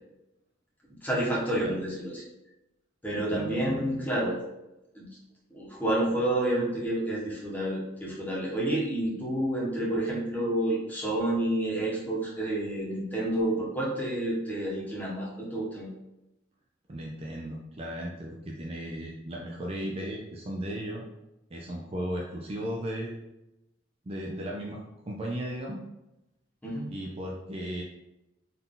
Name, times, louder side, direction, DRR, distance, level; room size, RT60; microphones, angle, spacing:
voice 1, 1.0-2.2 3.0-4.4 4.9-5.1 5.5-15.9 26.6-26.9, right 1 dB, 10° left, -6 dB, 1.1 m, -29 dB
voice 2, 3.3-3.9 16.9-21.0 21.5-23.2 24.1-24.8 25.0-25.8 26.9-27.8, equal, 30° right, -2 dB, 0.4 m, -36 dB
4.0 x 2.7 x 3.7 m, 0.92 s
head